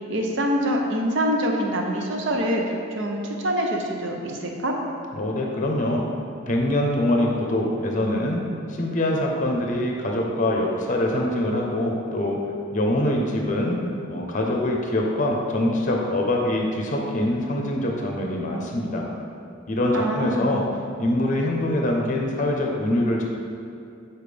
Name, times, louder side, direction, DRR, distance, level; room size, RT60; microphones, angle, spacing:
voice 1, 0.1-4.7 19.9-20.6, equal, 60° right, 1 dB, 0.7 m, -25 dB
voice 2, 5.2-6.0 6.5-8.4 8.7-12.4 12.7-13.8 14.1-19.1 19.7-20.6 21.0-23.2, left 1 dB, 40° left, 0 dB, 0.8 m, -24 dB
7.2 x 4.4 x 3.4 m, 2.6 s
head